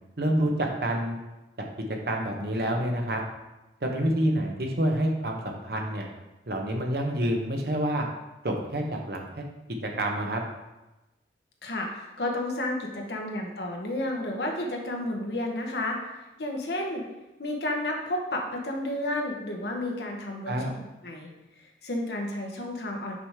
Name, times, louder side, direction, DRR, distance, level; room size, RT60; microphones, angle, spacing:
voice 1, 0.2-1.2 1.6-1.7 2.1-3.2 3.8-6.1 6.5-8.1 8.4-9.4 10.0-10.4 20.5-20.6, right 1 dB, 60° right, 2 dB, 1.0 m, -27 dB
voice 2, 11.6-16.0 16.4-17.0 17.4-20.7 21.0-21.3 21.8-23.2, left 1 dB, 65° left, 0 dB, 1.1 m, -31 dB
6.0 x 4.9 x 3.6 m, 1.0 s
head